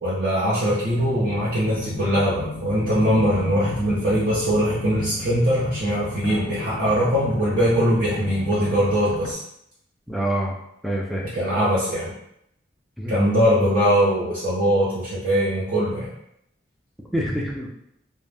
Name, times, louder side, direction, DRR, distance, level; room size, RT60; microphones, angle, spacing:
voice 1, 0.0-9.4 11.3-12.1 13.1-16.1, equal, 50° right, -9 dB, 0.6 m, -21 dB
sound 1, 0.9-9.3, left 3 dB, 85° left, 0.3 m, -35 dB
voice 2, 10.1-10.5 10.8-11.2 13.0-13.2 17.1-17.7, right 1 dB, ahead, -1 dB, 0.3 m, -26 dB
2.4 x 2.1 x 3.3 m, 0.76 s
head